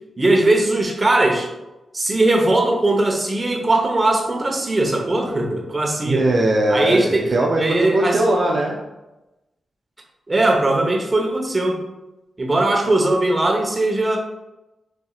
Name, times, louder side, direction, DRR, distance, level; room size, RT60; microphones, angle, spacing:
voice 1, 0.2-1.5 1.9-6.2 6.7-7.3 7.6-8.3 10.3-11.8 12.4-14.2, right 2 dB, 35° right, 2 dB, 0.9 m, -19 dB
voice 2, 6.0-8.8, right 1 dB, 60° right, -1 dB, 0.5 m, -20 dB
5.7 x 2.7 x 2.4 m, 0.99 s
cardioid pair, 55°, 0 cm